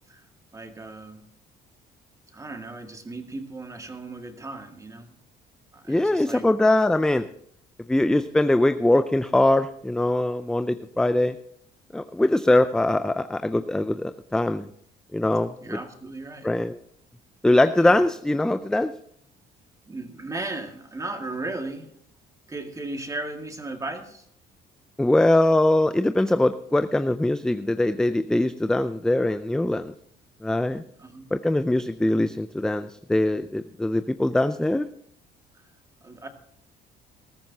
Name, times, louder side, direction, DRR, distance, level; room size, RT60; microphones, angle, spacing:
voice 1, 0.5-1.2 2.3-5.1 5.7-6.5 15.6-16.5 17.8-18.0 19.9-21.9 22.5-24.3 31.0-31.3 35.5-35.6 36.0-36.3, right 2 dB, 20° right, 4 dB, 2.0 m, -36 dB
voice 2, 5.9-7.3 7.9-11.4 11.9-14.7 15.1-15.8 16.4-16.8 17.4-18.9 25.0-29.9 30.4-30.8 31.3-34.9, left 1 dB, 5° left, 11 dB, 0.5 m, -22 dB
20.0 x 13.5 x 2.8 m, 0.67 s
cardioid pair, 110°, 17 cm